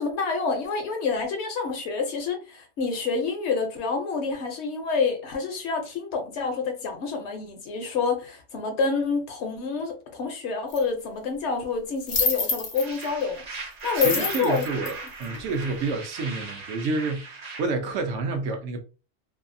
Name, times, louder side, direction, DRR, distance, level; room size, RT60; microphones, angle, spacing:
voice 1, 0.0-13.4 13.8-14.6, left 4 dB, 65° left, 0.8 m, -28 dB
sound 1, 10.7-10.8 12.0-13.0 13.9-15.7, left 3 dB, 50° left, 0.4 m, -27 dB
sound 2, 12.7-17.6, right 3 dB, 50° right, 0.5 m, -38 dB
voice 2, 13.9-18.8, right 3 dB, 70° right, 0.9 m, -29 dB
2.7 x 2.3 x 2.5 m
omnidirectional pair, 1.3 m